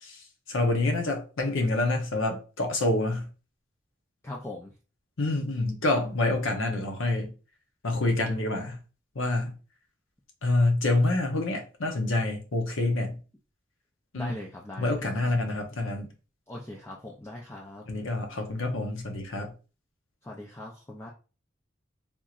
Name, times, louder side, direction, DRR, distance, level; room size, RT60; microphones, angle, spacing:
voice 1, 0.0-3.3 5.2-7.3 7.8-8.8 9.1-9.5 10.4-13.2 14.1-14.3 14.8-16.1 17.9-19.5, left 2 dB, 85° left, 0.8 m, -27 dB
voice 2, 4.2-4.7 14.1-15.0 16.5-17.8 20.2-21.1, left 1 dB, 15° left, 0.4 m, -40 dB
3.5 x 2.9 x 2.4 m
head